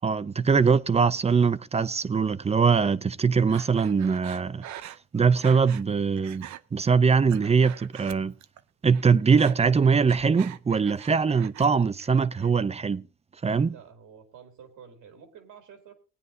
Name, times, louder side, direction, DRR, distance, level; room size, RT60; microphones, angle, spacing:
voice 1, 0.0-4.6 5.1-6.5 6.7-8.3 8.8-13.0 13.4-13.7, right 5 dB, 20° right, 0.5 m, -22 dB
Breathing, 3.5-5.9 6.2-6.6 7.1-8.6 8.9-11.7 12.0-12.6, right 12 dB, 70° right, 0.6 m, -43 dB
voice 2, 13.7-15.9, right 7 dB, 85° right, 2.4 m, -49 dB
19.5 x 9.4 x 2.6 m
cardioid pair, 90°, 30 cm